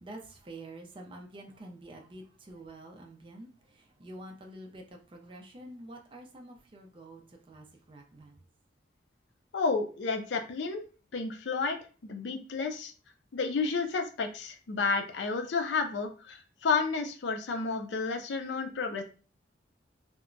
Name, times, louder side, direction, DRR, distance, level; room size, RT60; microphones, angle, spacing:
voice 1, 0.0-8.4, right 1 dB, 30° right, 0.4 m, -48 dB
voice 2, 9.5-10.8 11.1-11.8 12.0-12.9 13.3-19.0, left 4 dB, 65° left, 0.4 m, -31 dB
2.8 x 2.1 x 2.5 m
head